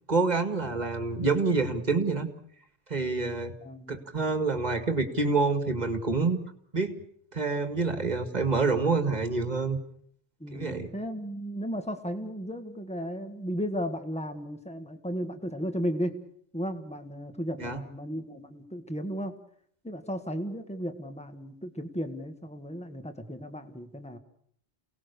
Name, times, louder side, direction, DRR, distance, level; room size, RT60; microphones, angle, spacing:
voice 1, 0.1-2.3 2.9-3.5 3.9-6.4 6.7-7.0 7.3-9.8 10.5-10.9 17.6-17.8, right 3 dB, 40° right, 8 dB, 2.1 m, -27 dB
voice 2, 3.6-4.1 10.4-16.2 16.5-19.4 19.8-24.2, equal, 5° left, 7 dB, 1.8 m, -35 dB
28.5 x 18.5 x 6.8 m, 0.65 s
omnidirectional pair, 1.2 m